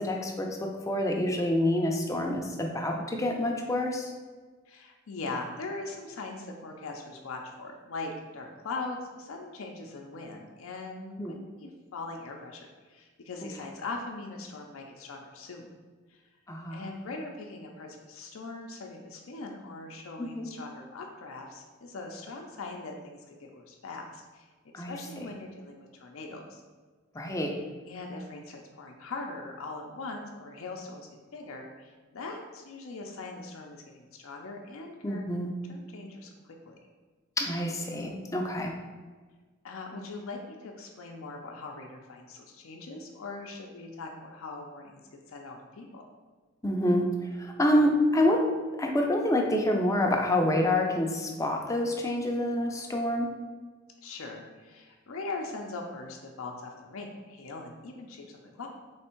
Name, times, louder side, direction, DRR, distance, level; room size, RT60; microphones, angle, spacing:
voice 1, 0.0-4.1 11.2-11.3 16.5-16.8 20.2-20.5 24.7-25.0 27.1-27.5 35.0-35.5 37.4-38.8 46.6-48.4 48.8-53.3, left 1 dB, 15° left, 1 dB, 0.5 m, -27 dB
voice 2, 4.7-15.7 16.1-16.2 16.7-24.5 24.8-26.6 27.9-35.3 35.7-36.8 39.6-46.0 54.0-58.7, left 3 dB, 75° left, 1 dB, 0.5 m, -41 dB
3.5 x 3.2 x 4.4 m, 1.4 s
head